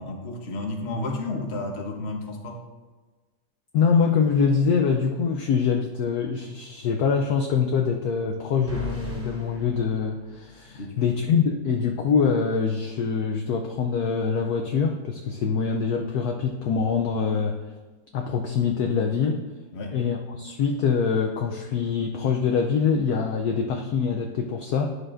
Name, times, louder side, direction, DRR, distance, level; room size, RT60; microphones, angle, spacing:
voice 1, 0.0-2.6 10.7-11.1 19.7-20.0, left 2 dB, 40° left, 1 dB, 1.1 m, -32 dB
voice 2, 3.7-17.6 18.1-19.4 19.9-24.9, left 6 dB, 70° left, 2 dB, 1.0 m, -24 dB
sound 1, 8.7-10.8, right 1 dB, 20° right, 2.3 m, -37 dB
11.0 x 6.5 x 2.5 m, 1.3 s
omnidirectional pair, 1.9 m